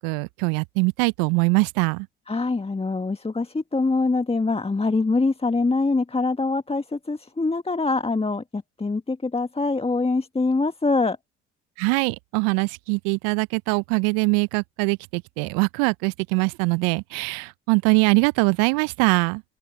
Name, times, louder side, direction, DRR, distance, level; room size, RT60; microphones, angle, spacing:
voice 1, 0.0-2.1 11.8-19.4, right 30 dB, 65° right, 0.7 m, -22 dB
voice 2, 2.3-11.2, left 3 dB, 15° left, 1.6 m, -24 dB
open air
hypercardioid pair, 55°, 37 cm